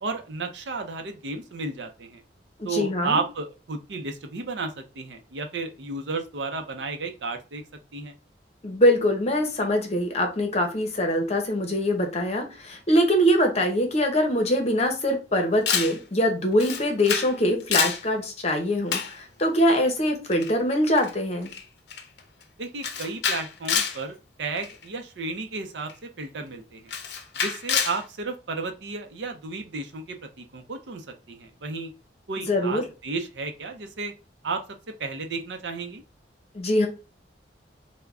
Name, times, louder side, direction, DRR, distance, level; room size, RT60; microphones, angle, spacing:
voice 1, 0.0-2.2 2.6-7.6 7.9-8.1 22.6-25.9 26.2-26.9 27.4-31.9 32.3-34.1 34.4-34.6 35.0-36.0, right 3 dB, 85° right, 6 dB, 0.6 m, -33 dB
voice 2, 2.6-3.2 8.6-21.5 32.5-32.8 36.5-36.9, equal, 40° left, 3 dB, 0.8 m, -23 dB
Camera, 15.7-16.0 16.6-17.3 17.6-18.0 18.9-19.2 20.3-20.5 21.0-21.1 21.5-21.6 21.9-22.2 22.8-24.0 24.6-24.8 25.9-26.0 26.9-28.0, left 7 dB, 65° left, 0.5 m, -27 dB
3.4 x 2.2 x 3.5 m, 0.32 s
head